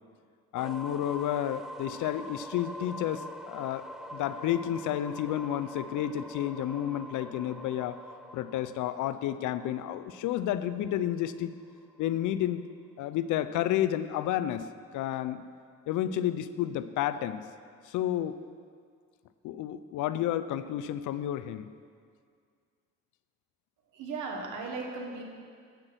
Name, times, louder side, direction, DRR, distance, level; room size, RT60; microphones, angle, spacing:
voice 1, 0.5-8.0 8.3-11.5 12.0-12.6 13.0-14.7 14.9-15.4 15.9-17.4 17.9-18.4 19.4-21.7, left 11 dB, 80° left, 13 dB, 0.5 m, -31 dB
sound 1, 0.5-12.3, equal, ahead, 0.4 m, -45 dB
voice 2, 23.9-25.2, right 4 dB, 85° right, 1 dB, 1.3 m, -36 dB
7.8 x 5.8 x 6.2 m, 2.1 s
cardioid pair, 90°, 30 cm